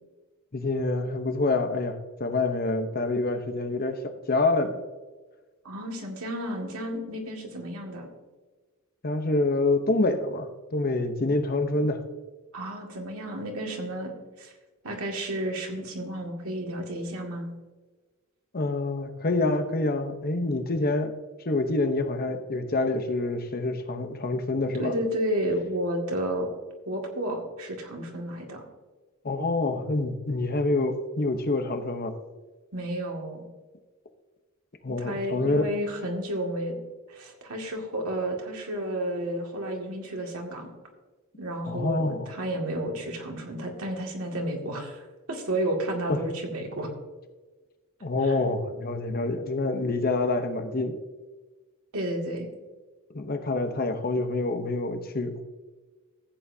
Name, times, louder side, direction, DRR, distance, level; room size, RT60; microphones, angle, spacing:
voice 1, 0.5-4.8 9.0-12.0 18.5-21.1 21.4-25.0 29.2-32.1 34.8-35.7 41.6-42.3 46.1-46.2 48.0-51.0 53.1-55.4, left 2 dB, 45° left, 7 dB, 0.9 m, -27 dB
voice 2, 5.6-8.1 12.5-14.5 14.8-17.5 24.8-26.5 26.9-28.6 32.7-33.4 35.0-36.8 37.1-40.7 41.4-46.9 48.3-48.4 51.9-52.5, right 1 dB, 85° right, 1 dB, 2.1 m, -32 dB
14.5 x 8.5 x 2.7 m, 1.3 s
head